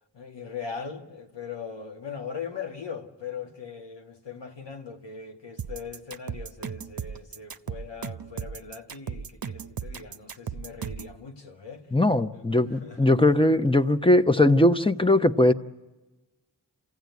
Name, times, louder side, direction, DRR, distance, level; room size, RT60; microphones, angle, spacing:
voice 1, 0.1-11.9 12.3-13.3, left 6 dB, 90° left, 1.8 m, -40 dB
sound 1, 5.6-11.2, right 7 dB, 55° right, 0.8 m, -36 dB
voice 2, 11.9-15.5, left 1 dB, 10° left, 1.0 m, -20 dB
27.5 x 16.0 x 9.5 m
cardioid pair, 45°, 41 cm